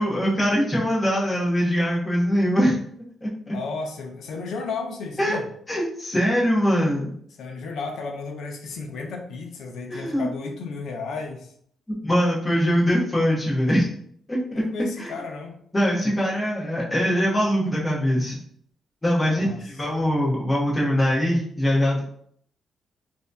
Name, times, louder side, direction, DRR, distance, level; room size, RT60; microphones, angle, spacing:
voice 1, 0.0-2.8 3.2-3.5 5.2-5.4 5.7-7.1 9.9-10.3 11.9-13.9 14.3-14.4 15.0-15.1 15.7-18.4 19.0-22.0, equal, 10° left, -5 dB, 0.8 m, -22 dB
voice 2, 3.5-5.5 7.4-11.5 14.5-15.6 19.2-19.7, left 4 dB, 70° left, 3 dB, 0.6 m, -33 dB
4.4 x 2.6 x 2.2 m, 0.64 s
cardioid pair, 155°, 0 cm